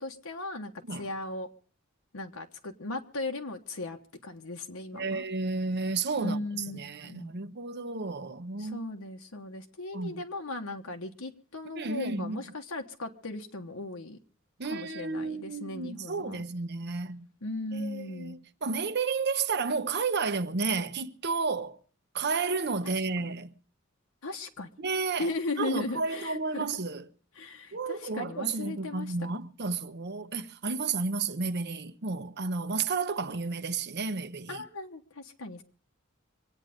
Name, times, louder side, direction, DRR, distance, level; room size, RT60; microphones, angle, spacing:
voice 1, 0.0-1.5 2.1-5.2 6.2-7.3 8.6-14.2 14.7-16.5 17.4-18.4 24.2-24.7 25.2-26.7 27.3-29.3 34.5-35.6, left 2 dB, 80° left, 1.2 m, -37 dB
voice 2, 4.9-6.4 6.7-8.8 9.9-10.2 11.8-12.4 14.6-17.3 17.7-21.8 22.1-23.5 24.8-25.3 25.6-27.1 27.7-34.6, right 4 dB, 55° right, 0.9 m, -32 dB
24.5 x 9.1 x 5.2 m
head